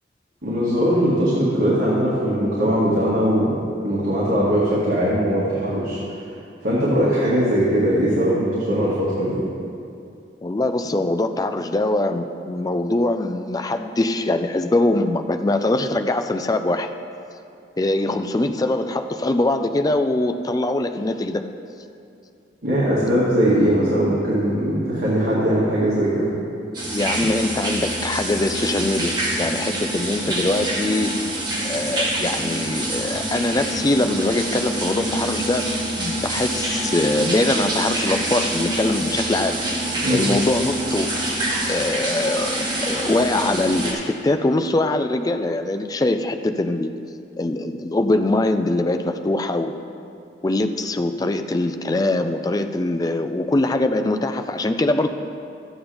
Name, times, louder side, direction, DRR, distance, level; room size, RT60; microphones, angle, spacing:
voice 1, 0.4-3.6 3.8-6.0 6.6-9.4 22.6-26.3 40.0-40.2, equal, 55° right, -9 dB, 2.0 m, -20 dB
voice 2, 10.4-16.9 17.8-21.4 23.6-23.7 26.9-31.2 31.6-39.6 40.1-41.2 41.7-46.9 47.4-49.8 50.4-55.1, left 2 dB, 20° left, 8 dB, 0.4 m, -22 dB
sound 1, 26.7-43.9, right 1 dB, 25° right, 1.7 m, -26 dB
13.0 x 8.7 x 3.4 m, 2.5 s
head